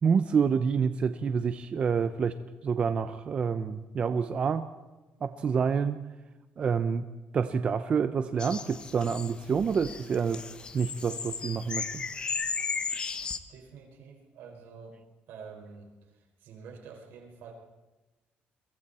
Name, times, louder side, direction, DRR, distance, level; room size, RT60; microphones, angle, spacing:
voice 1, 0.0-2.4 2.6-4.6 5.2-6.0 6.6-7.0 7.3-10.4 10.7-12.0, right 6 dB, 30° right, 10 dB, 0.7 m, -27 dB
sound 1, 8.4-13.4, left 5 dB, 25° left, 1.0 m, -35 dB
voice 2, 13.5-15.0 15.3-17.5, right 5 dB, 75° right, 2 dB, 5.2 m, -48 dB
29.0 x 23.0 x 4.3 m, 1.1 s
cardioid pair, 175°, 4 cm